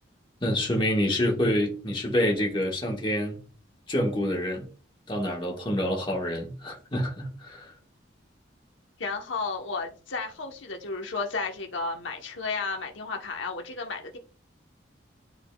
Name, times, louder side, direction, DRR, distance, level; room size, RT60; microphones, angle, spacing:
voice 1, 0.4-3.3 3.9-4.7 5.1-7.7, equal, 25° left, 1.5 m, -27 dB
voice 2, 9.0-14.2, left 4 dB, 90° left, 1.0 m, -33 dB
10.5 x 4.1 x 2.3 m
head